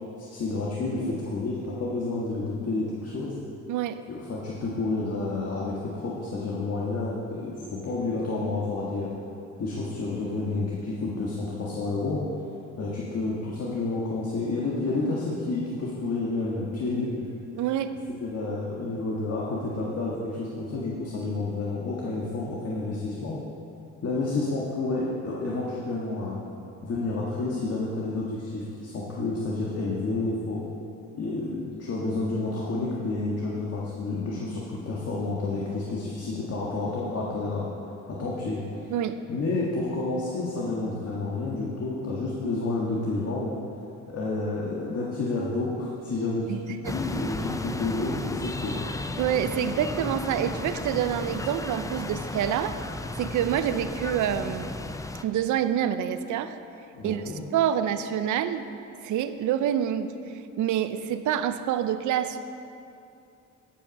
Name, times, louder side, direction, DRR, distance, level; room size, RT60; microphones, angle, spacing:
voice 1, 0.2-3.4 4.1-9.1 9.6-12.2 12.8-17.3 18.2-23.4 24.0-26.4 26.8-30.6 31.1-37.7 38.1-38.6 39.3-43.6 44.1-48.9 56.9-57.4, left 3 dB, 55° left, -5 dB, 1.6 m, -30 dB
voice 2, 3.7-4.0 17.6-17.9 38.9-39.2 46.5-47.0 49.2-52.8 53.2-54.7 55.2-56.6 57.0-57.2 57.5-58.7 59.0-62.4, right 10 dB, 75° right, 11 dB, 0.6 m, -27 dB
sound 1, 46.8-55.2, left 2 dB, 10° left, 0.4 m, -34 dB
15.0 x 5.8 x 5.3 m, 2.7 s
cardioid pair, 90°, 30 cm